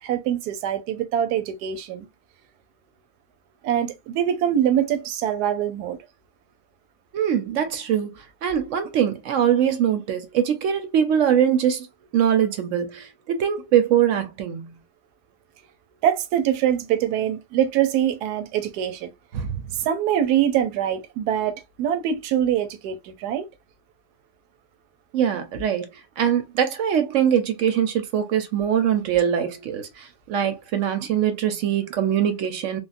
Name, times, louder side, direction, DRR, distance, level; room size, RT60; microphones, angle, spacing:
voice 1, 0.0-2.1 3.6-6.0 16.0-19.1 19.8-23.5, right 10 dB, 80° right, 1.1 m, -24 dB
voice 2, 7.1-8.1 8.4-11.9 12.1-14.7 19.3-19.6 25.1-25.9 26.2-32.8, right 9 dB, 65° right, 0.8 m, -22 dB
3.5 x 2.1 x 2.4 m
omnidirectional pair, 1.7 m